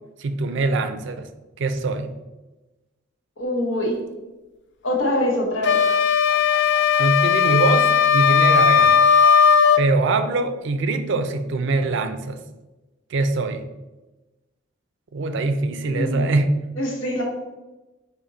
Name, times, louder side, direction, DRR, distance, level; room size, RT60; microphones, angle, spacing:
voice 1, 0.2-1.3 1.6-2.1 7.0-9.1 9.8-12.4 13.1-13.6 15.1-16.5, right 3 dB, 65° right, 9 dB, 0.4 m, -23 dB
voice 2, 3.4-4.0 4.8-5.8 15.8-16.2 16.8-17.2, left 1 dB, 85° left, 0 dB, 1.0 m, -24 dB
sound 1, 5.6-9.9, left 7 dB, 60° left, 0.4 m, -16 dB
5.0 x 2.6 x 3.8 m, 1.1 s
head